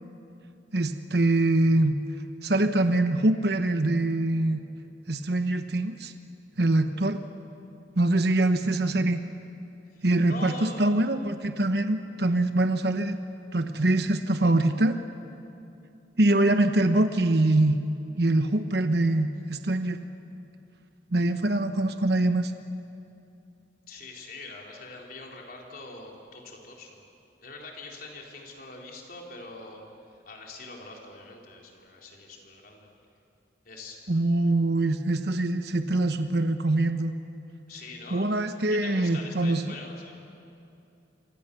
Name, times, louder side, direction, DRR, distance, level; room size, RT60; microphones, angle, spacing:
voice 1, 0.7-2.0 2.4-4.6 5.1-6.1 6.6-7.2 8.0-9.2 10.0-13.2 13.5-15.0 16.2-17.8 18.2-20.0 21.1-22.5 34.1-37.1 38.1-39.7, right 2 dB, 60° right, 8 dB, 1.1 m, -24 dB
voice 2, 9.9-10.9 23.9-27.0 27.4-29.8 30.3-32.9 33.6-34.0 37.7-38.3 38.7-40.2, left 3 dB, 55° left, -1 dB, 4.2 m, -43 dB
27.5 x 25.5 x 7.0 m, 2.7 s
head